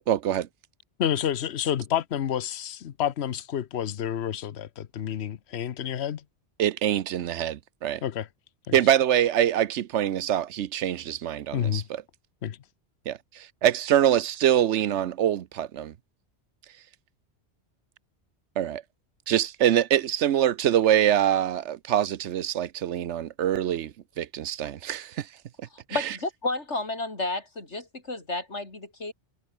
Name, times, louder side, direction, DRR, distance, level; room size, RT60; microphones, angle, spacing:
voice 1, 0.1-0.5 6.6-8.0 8.7-11.8 13.1-15.9 18.6-18.8 19.3-25.3 25.9-26.0, right 11 dB, 85° right, 1.1 m, -24 dB
voice 2, 1.0-6.2 8.0-8.3 8.7-8.8 11.5-11.9 12.4-12.6, left 9 dB, 70° left, 1.1 m, -29 dB
voice 3, 25.7-29.1, left 2 dB, 90° left, 4.7 m, -32 dB
omnidirectional pair, 1.2 m